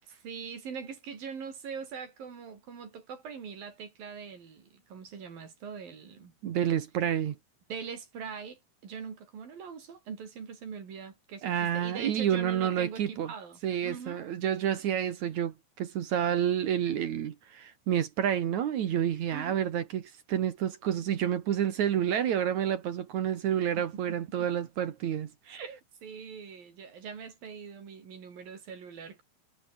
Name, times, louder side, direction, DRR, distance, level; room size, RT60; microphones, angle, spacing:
voice 1, 0.0-6.3 7.7-14.2 19.3-19.6 25.4-29.2, right 6 dB, 50° right, 5.5 m, -42 dB
voice 2, 6.4-7.4 11.4-13.3 13.6-25.3, right 9 dB, 70° right, 1.8 m, -29 dB
omnidirectional pair, 5.6 m